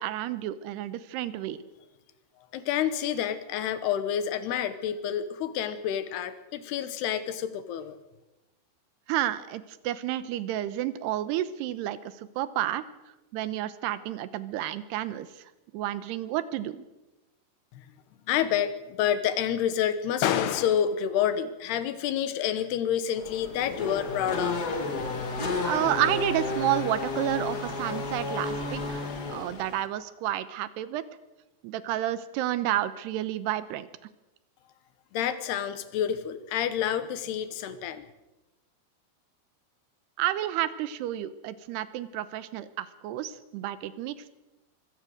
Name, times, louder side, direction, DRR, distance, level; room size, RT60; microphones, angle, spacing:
voice 1, 0.0-1.6 9.1-12.9 13.3-15.4 15.7-16.8 25.6-31.0 31.6-33.9 40.2-44.3, right 13 dB, 85° right, 14 dB, 3.0 m, -30 dB
voice 2, 2.5-8.0 17.7-17.9 18.3-24.6 35.1-38.1, left 9 dB, 80° left, 12 dB, 3.2 m, -28 dB
Race car auto racing / Accelerating revving vroom, 23.2-29.9, left 3 dB, 40° left, 1.4 m, -32 dB
24.0 x 17.0 x 6.6 m, 1.0 s
omnidirectional pair, 4.7 m